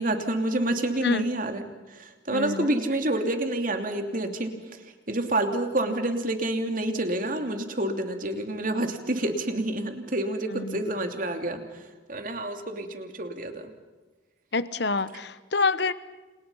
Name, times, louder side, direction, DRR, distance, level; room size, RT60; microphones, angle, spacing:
voice 1, 0.0-1.6 1.9-13.7, right 1 dB, 45° right, 5 dB, 2.9 m, -28 dB
voice 2, 1.0-1.3 2.3-2.7 10.5-10.8 14.5-15.9, left 3 dB, 60° left, 15 dB, 1.1 m, -27 dB
30.0 x 29.5 x 5.7 m, 1.2 s
head